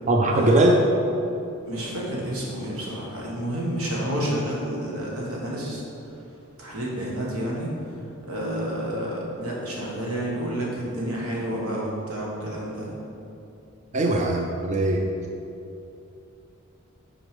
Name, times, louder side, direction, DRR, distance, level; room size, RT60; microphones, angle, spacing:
voice 1, 0.1-0.8 13.9-15.1, right 1 dB, 35° right, 2 dB, 0.4 m, -20 dB
voice 2, 1.7-5.8 6.6-7.9 8.3-12.9, right 1 dB, 90° right, -4 dB, 1.7 m, -30 dB
6.3 x 5.0 x 5.2 m, 2.8 s
head